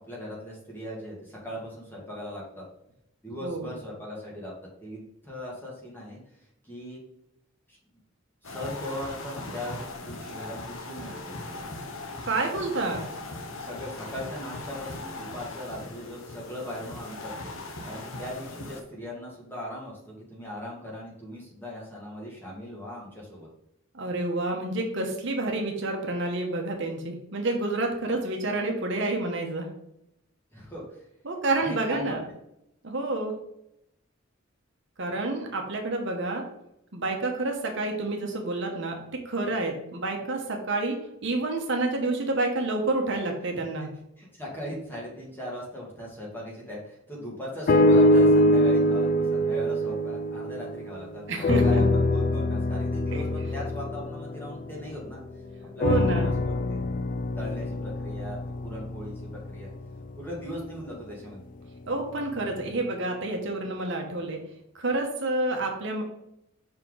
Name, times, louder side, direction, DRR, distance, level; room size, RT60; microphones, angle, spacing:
voice 1, 0.1-2.6 3.2-4.5 4.8-6.2 6.6-7.0 7.7-7.8 8.4-11.7 13.6-17.3 17.6-23.5 30.5-31.0 31.6-32.2 43.8-43.9 44.2-55.2 55.7-56.8 57.4-59.7 60.2-61.4, left 1 dB, 10° left, -4 dB, 1.8 m, -39 dB
voice 2, 3.4-3.8 12.2-13.1 23.9-29.7 31.2-32.2 32.8-33.3 35.0-36.4 36.9-39.0 39.2-43.9 51.3-51.8 53.1-53.2 55.8-56.3 61.9-64.4 64.7-66.0, right 2 dB, 60° right, 2 dB, 1.0 m, -29 dB
sound 1, 8.4-18.8, left 2 dB, 75° left, 0.8 m, -39 dB
sound 2, 47.7-51.0 51.4-55.2 55.8-60.0 60.7-60.8, left 1 dB, 40° left, 0.3 m, -24 dB
5.7 x 4.4 x 3.8 m, 0.81 s
head